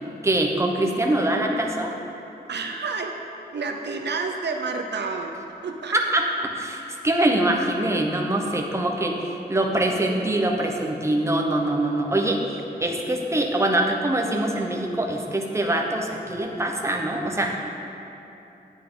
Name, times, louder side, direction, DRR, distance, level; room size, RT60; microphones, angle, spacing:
voice 1, 0.2-1.9 5.9-17.6, right 1 dB, 15° right, 1 dB, 0.9 m, -24 dB
voice 2, 2.5-3.2 3.5-5.3 5.6-5.9, right 4 dB, 75° right, 4 dB, 0.7 m, -29 dB
9.2 x 9.1 x 3.8 m, 2.9 s
wide cardioid pair, 105°, 18 cm